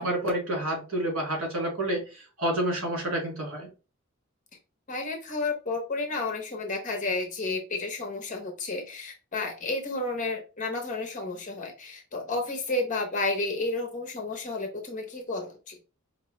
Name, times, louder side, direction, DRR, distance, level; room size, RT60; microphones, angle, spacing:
voice 1, 0.0-3.7, right 1 dB, 80° right, -1 dB, 2.0 m, -29 dB
voice 2, 4.9-15.8, left 3 dB, 40° left, 3 dB, 0.9 m, -31 dB
4.6 x 2.3 x 3.1 m, 0.31 s
head